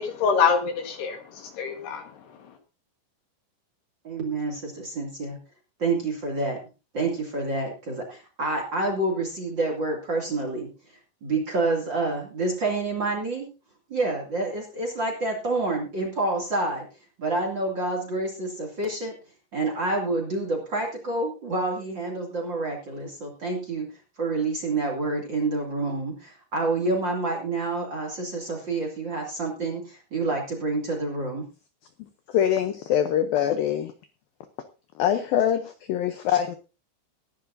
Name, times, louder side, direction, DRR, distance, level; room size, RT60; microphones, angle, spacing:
voice 1, 0.0-2.5, left 6 dB, 65° left, 5 dB, 3.3 m, -26 dB
voice 2, 4.0-5.4 5.8-6.6 6.9-13.5 13.9-16.9 17.2-19.1 19.5-31.5, right 2 dB, 30° right, 2 dB, 2.4 m, -28 dB
voice 3, 32.3-33.9 35.0-36.6, left 10 dB, 90° left, 9 dB, 2.0 m, -24 dB
20.0 x 10.5 x 2.7 m, 0.30 s
omnidirectional pair, 5.4 m